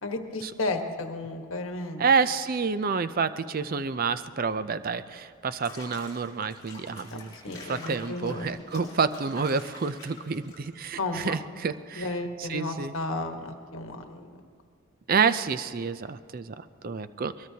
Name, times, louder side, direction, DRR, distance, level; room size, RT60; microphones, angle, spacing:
voice 1, 0.0-2.0 7.1-7.2 7.4-8.5 8.7-8.9 11.0-11.4 12.0-14.3, left 2 dB, 70° left, 5 dB, 1.3 m, -33 dB
voice 2, 2.0-7.3 7.6-12.1 12.4-12.9 15.1-17.3, right 5 dB, 40° right, 12 dB, 0.4 m, -28 dB
Water / Bathtub (filling or washing), 5.4-10.9, left 3 dB, 20° left, 5.4 m, -47 dB
22.5 x 22.0 x 2.8 m, 2.2 s
head